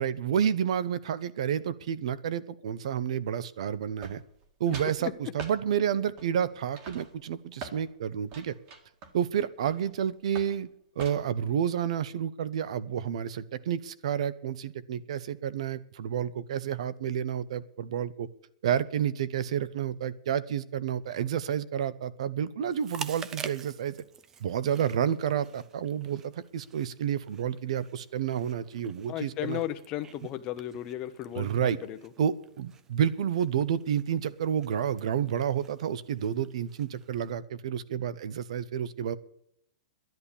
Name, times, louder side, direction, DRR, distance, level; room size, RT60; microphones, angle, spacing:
voice 1, 0.0-4.2 4.6-8.5 9.1-10.7 11.0-18.3 18.6-24.0 24.4-29.6 31.3-31.8 32.2-39.2, right 9 dB, 55° right, 17 dB, 0.9 m, -30 dB
sound 1, 4.0-4.5 4.7-5.0 5.4-5.6 6.2-6.5 6.8-7.8 8.3-9.9 10.3-10.6 11.0-11.4, right 4 dB, 30° right, 1.9 m, -43 dB
voice 2, 4.7-5.1 29.1-32.0, left 13 dB, 20° left, 10 dB, 0.8 m, -35 dB
Chewing mastication, 22.7-37.3, right 6 dB, 10° right, 0.4 m, -48 dB
11.5 x 11.0 x 7.1 m, 0.71 s
hypercardioid pair, 175°, 4 cm